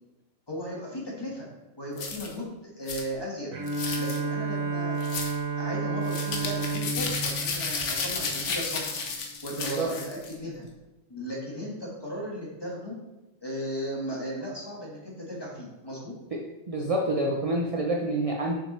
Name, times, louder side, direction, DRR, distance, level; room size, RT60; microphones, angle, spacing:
voice 1, 0.5-1.5 1.8-3.5 4.0-5.0 5.6-9.0 9.4-10.6 11.1-12.9 13.4-16.1, equal, 20° left, -3 dB, 1.6 m, -36 dB
sound 1, 2.0-2.3 2.9-3.0 3.7-4.2 5.0-5.3 6.0-10.3, left 4 dB, 60° left, 1.2 m, -32 dB
Bowed string instrument, 3.5-8.8, right 3 dB, 70° right, 1.2 m, -31 dB
voice 2, 9.6-9.9 16.3-16.4 16.7-18.6, right 1 dB, 40° right, 0 dB, 0.5 m, -27 dB
6.5 x 5.7 x 3.2 m, 1.0 s
omnidirectional pair, 1.4 m